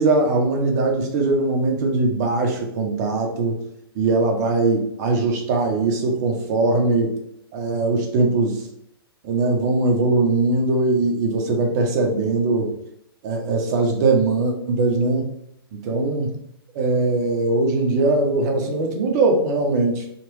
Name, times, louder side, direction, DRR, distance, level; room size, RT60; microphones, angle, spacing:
voice 1, 0.0-3.6 3.9-7.1 7.5-8.6 9.2-12.7 13.2-15.3 15.7-16.3 16.7-20.0, right 3 dB, 45° right, 2 dB, 0.8 m, -21 dB
3.0 x 2.5 x 3.1 m, 0.75 s
hypercardioid pair, 115°, 13 cm